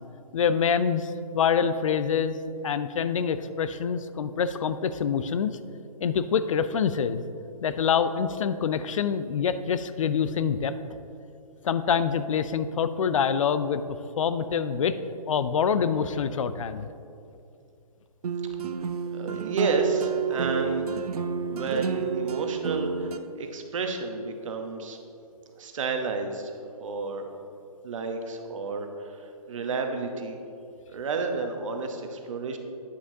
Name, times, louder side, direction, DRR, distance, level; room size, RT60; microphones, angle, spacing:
voice 1, 0.3-2.4 2.6-5.5 6.0-7.2 7.6-10.7 11.6-13.8 14.2-15.0 15.3-16.9, left 7 dB, 60° left, 12 dB, 0.4 m, -25 dB
sound 1, 18.2-23.2, right 7 dB, 80° right, 0.5 m, -29 dB
voice 2, 19.1-20.9 21.5-25.0 25.6-27.2 27.8-30.4 30.9-32.6, right 4 dB, 55° right, 4 dB, 0.9 m, -31 dB
9.5 x 6.1 x 2.7 m, 2.6 s
hypercardioid pair, 145°, 19 cm